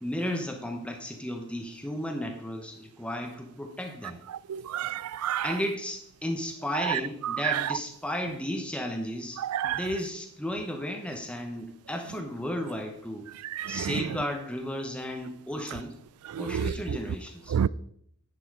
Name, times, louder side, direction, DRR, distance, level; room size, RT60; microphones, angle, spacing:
voice 1, 0.0-4.2 5.4-13.2 13.7-15.9 16.4-17.6, left 1 dB, 5° left, 0.9 m, -34 dB
voice 2, 4.5-5.5 6.9-7.0 7.4-7.6 9.4-9.8 13.5-13.9 16.3-16.7 17.5-17.7, right 9 dB, 90° right, 0.3 m, -29 dB
10.5 x 6.9 x 4.8 m
head